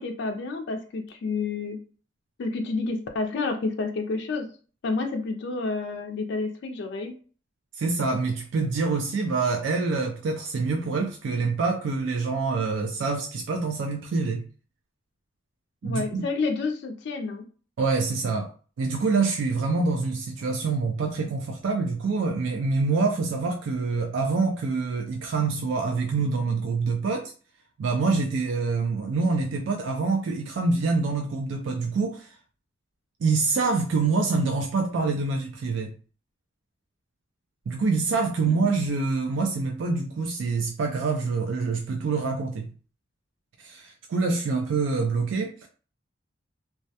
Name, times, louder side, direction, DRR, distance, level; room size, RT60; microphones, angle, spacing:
voice 1, 0.0-1.8 2.4-4.5 4.8-7.1 15.8-17.4, left 3 dB, 60° left, 0.4 m, -29 dB
voice 2, 7.7-14.4 15.8-16.2 17.8-18.5 18.8-27.3 27.8-32.4 33.2-35.9 37.7-42.7 43.6-45.7, right 4 dB, 70° right, 0.3 m, -26 dB
2.2 x 2.1 x 2.7 m
head